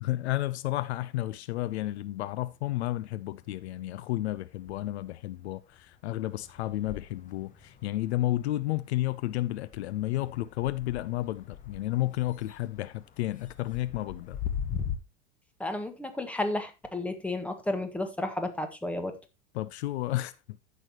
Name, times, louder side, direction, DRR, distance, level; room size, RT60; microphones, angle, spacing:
voice 1, 0.0-14.4 19.5-20.6, left 16 dB, 60° left, 0.7 m, -32 dB
sound 1, 2.0-2.9 3.3-15.0, left 8 dB, 20° left, 1.2 m, -42 dB
voice 2, 15.6-19.2, left 2 dB, 5° left, 1.6 m, -32 dB
14.5 x 6.2 x 3.0 m
hypercardioid pair, 105°, 36 cm